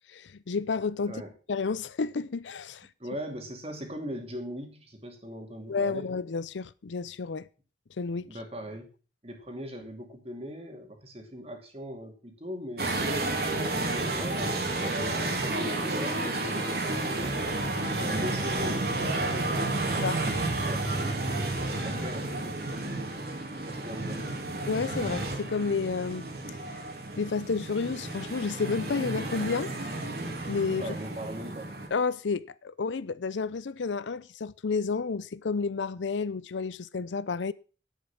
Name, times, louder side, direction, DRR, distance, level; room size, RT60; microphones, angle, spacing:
voice 1, 0.1-1.2 1.5-2.9 5.7-7.5 8.0-8.3 20.0-20.2 20.5-20.6 24.7-26.3 27.2-30.0 30.5-30.9 31.9-37.5, left 4 dB, 85° left, 0.5 m, -31 dB
voice 2, 3.0-6.1 8.2-8.9 9.2-13.0 13.8-17.6 18.0-20.0 20.5-22.8 23.6-24.4 30.8-31.7, equal, 35° right, 2.5 m, -40 dB
sound 1, 12.8-31.9, right 2 dB, 55° right, 2.4 m, -31 dB
10.0 x 8.5 x 5.8 m
head